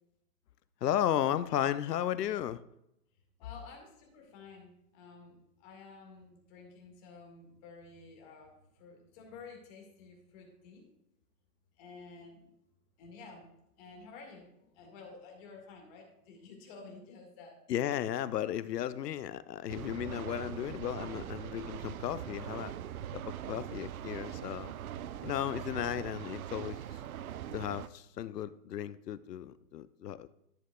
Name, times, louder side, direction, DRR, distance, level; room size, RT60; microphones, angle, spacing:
voice 1, 0.8-2.6 17.7-22.7 23.1-24.7 25.2-26.8 27.5-30.3, left 11 dB, 80° left, 15 dB, 0.7 m, -34 dB
voice 2, 3.4-10.9 11.8-12.5 13.0-13.5 13.8-17.6, left 4 dB, 25° left, 1 dB, 1.8 m, -52 dB
sound 1, 19.7-27.9, right 10 dB, 65° right, 0.6 m, -42 dB
13.5 x 7.9 x 2.3 m, 0.81 s
hypercardioid pair, 155°, 48 cm